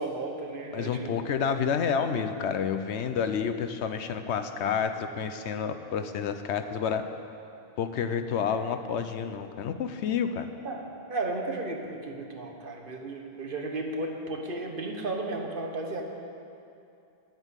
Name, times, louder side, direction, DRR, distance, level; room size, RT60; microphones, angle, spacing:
voice 1, 0.0-1.2 1.5-1.6 10.6-16.0, right 2 dB, 50° right, 2 dB, 1.2 m, -34 dB
voice 2, 0.7-7.1 7.8-10.5, left 7 dB, 75° left, 9 dB, 0.9 m, -29 dB
10.0 x 8.0 x 8.2 m, 2.7 s
omnidirectional pair, 1.2 m